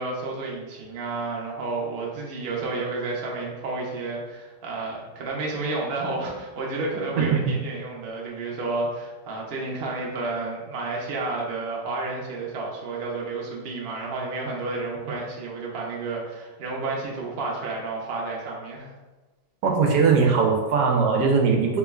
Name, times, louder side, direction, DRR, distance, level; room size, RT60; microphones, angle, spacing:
voice 1, 0.0-18.9, right 3 dB, 60° right, -3 dB, 0.6 m, -31 dB
voice 2, 19.6-21.8, right 5 dB, 75° right, 1 dB, 1.1 m, -20 dB
3.6 x 3.0 x 2.3 m, 1.2 s
omnidirectional pair, 1.9 m